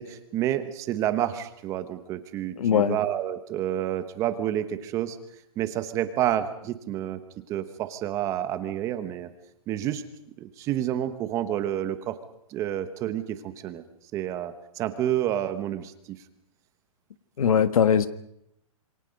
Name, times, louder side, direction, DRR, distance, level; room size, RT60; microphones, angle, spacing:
voice 1, 0.0-5.2 5.6-7.2 7.5-9.3 9.7-10.0 10.4-12.2 12.5-13.8 14.1-15.9, right 11 dB, 15° right, 11 dB, 1.0 m, -29 dB
voice 2, 2.6-3.0 17.4-18.1, left 7 dB, 75° left, 13 dB, 1.5 m, -20 dB
27.0 x 23.5 x 5.3 m, 0.77 s
hypercardioid pair, 170°, 18 cm